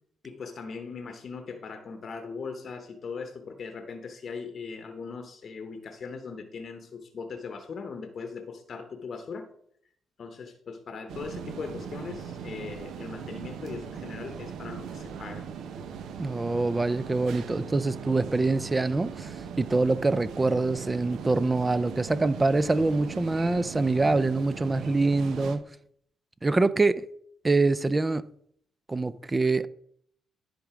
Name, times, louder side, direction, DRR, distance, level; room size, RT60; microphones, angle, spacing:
voice 1, 0.2-9.5 10.2-15.5, left 5 dB, 50° left, 0.8 m, -39 dB
sound 1, 11.1-25.6, right 7 dB, 75° right, 0.8 m, -39 dB
voice 2, 16.2-25.6 26.4-27.1 27.4-28.3 28.9-29.7, right 3 dB, 20° right, 0.4 m, -25 dB
10.5 x 3.9 x 4.8 m
cardioid pair, 90°, 0 cm